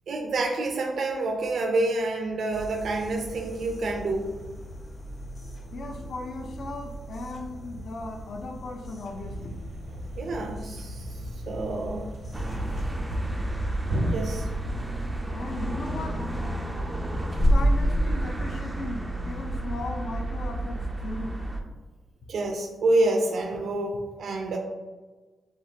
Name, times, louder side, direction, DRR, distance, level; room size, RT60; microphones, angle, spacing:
voice 1, 0.1-4.3 10.2-11.1 11.5-12.1 14.0-14.5 22.3-24.6, right 2 dB, 60° right, 1 dB, 0.5 m, -28 dB
sound 1, 2.5-12.9, right 1 dB, 35° left, 1.1 m, -42 dB
voice 2, 5.7-9.6 15.3-16.2 17.5-21.3, left 2 dB, 55° left, 3 dB, 0.6 m, -37 dB
Thump thud, 9.0-15.2, equal, 90° right, 0.9 m, -35 dB
sound 2, 12.3-21.6, right 1 dB, 10° right, 0.4 m, -28 dB
7.4 x 2.5 x 2.8 m, 1.3 s
wide cardioid pair, 175°, 0 cm